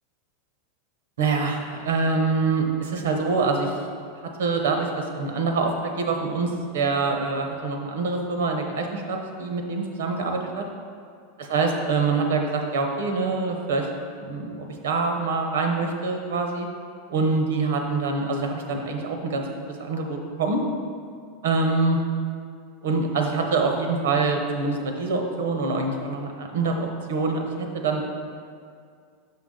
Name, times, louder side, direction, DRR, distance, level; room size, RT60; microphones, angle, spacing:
voice 1, 1.2-3.8 4.4-10.6 11.4-13.9 14.2-16.7 17.1-20.6 21.4-22.0 22.8-28.0, right 3 dB, 90° right, 3 dB, 0.9 m, -25 dB
5.8 x 5.8 x 3.8 m, 2.2 s
supercardioid pair, 135°, 0 cm